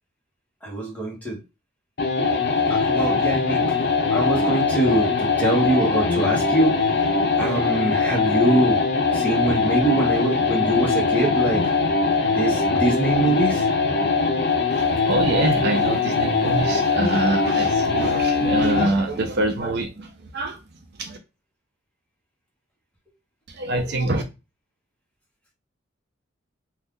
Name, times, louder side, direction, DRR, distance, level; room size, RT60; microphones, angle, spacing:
voice 1, 0.6-1.4 2.7-3.8 4.1-8.8 9.1-11.8 12.3-13.7, right 1 dB, 10° left, 1.2 m, -23 dB
sound 1, 2.0-19.0, left 4 dB, 55° left, 0.6 m, -21 dB
voice 2, 14.7-21.2 23.5-24.2, right 2 dB, 55° right, 0.5 m, -25 dB
2.6 x 2.3 x 3.6 m
head